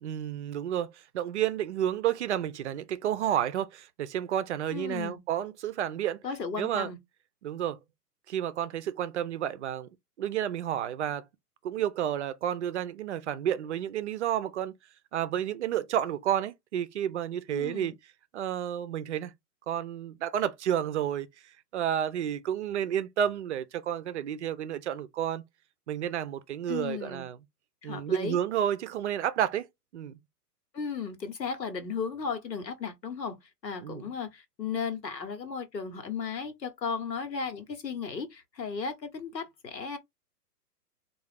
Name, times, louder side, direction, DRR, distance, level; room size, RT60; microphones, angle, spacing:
voice 1, 0.0-6.2 6.6-6.9 7.4-7.8 8.3-9.9 10.2-11.2 11.6-14.7 15.1-18.0 18.3-19.3 19.7-21.3 21.7-25.4 25.9-27.4 27.8-29.7 29.9-30.2 33.8-34.0, right 10 dB, 45° right, 0.6 m, -31 dB
voice 2, 4.7-5.2 6.2-7.0 17.5-17.9 26.7-27.3 27.8-28.4 30.7-33.4 33.6-40.0, left 5 dB, 85° left, 1.2 m, -35 dB
3.7 x 2.4 x 3.3 m
figure-of-eight pair, 120°, 49 cm